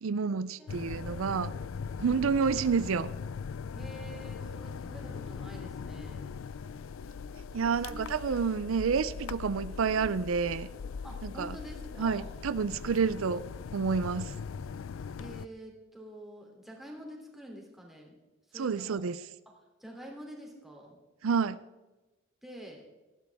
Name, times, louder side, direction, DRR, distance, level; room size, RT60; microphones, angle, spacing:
voice 1, 0.0-1.5 2.0-3.1 7.5-10.7 11.2-11.6 12.0-13.4 13.7-14.3 18.6-19.2 21.2-21.6, right 5 dB, 85° right, 15 dB, 0.5 m, -29 dB
voice 2, 0.6-1.4 3.7-6.3 7.6-8.2 11.0-12.3 15.2-18.2 18.5-19.1 19.8-21.0 22.4-22.9, equal, ahead, -1 dB, 3.0 m, -47 dB
sound 1, 0.7-15.5, left 5 dB, 85° left, 0.4 m, -40 dB
18.0 x 14.0 x 3.5 m, 1.1 s
head